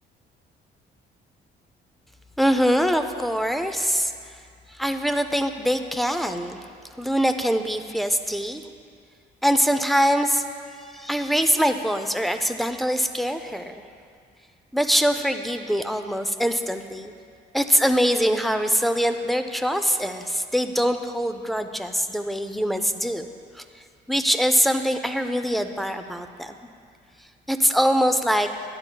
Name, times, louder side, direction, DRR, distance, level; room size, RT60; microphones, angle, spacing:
voice 1, 2.4-4.1 4.7-6.6 7.0-8.7 9.4-10.4 10.8-13.8 14.7-17.1 17.5-23.3 23.5-23.6 24.1-26.6 27.5-28.5, equal, ahead, 8 dB, 0.5 m, -23 dB
12.5 x 10.0 x 2.3 m, 2.2 s
cardioid pair, 90°, 20 cm